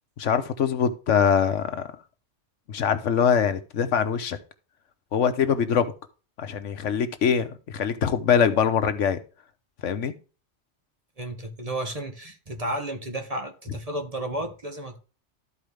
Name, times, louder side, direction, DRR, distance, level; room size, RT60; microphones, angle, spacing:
voice 1, 0.2-1.9 2.7-4.4 5.1-5.9 6.4-9.2 9.8-10.1, left 7 dB, 85° left, 1.3 m, -23 dB
voice 2, 11.2-15.0, right 1 dB, 30° right, 1.5 m, -32 dB
13.5 x 4.8 x 3.3 m
omnidirectional pair, 1.2 m